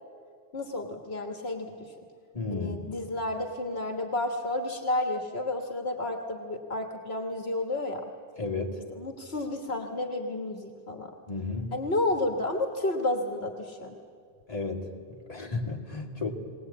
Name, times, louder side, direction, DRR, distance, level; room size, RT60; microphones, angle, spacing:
voice 1, 0.5-1.9 2.5-8.0 8.9-11.1 11.7-13.9, left 2 dB, 70° left, 4 dB, 1.6 m, -31 dB
voice 2, 2.3-2.9 8.4-8.8 11.3-11.8 14.5-16.3, left 3 dB, 35° left, 0 dB, 2.2 m, -33 dB
21.0 x 18.5 x 8.5 m, 2.2 s
omnidirectional pair, 1.1 m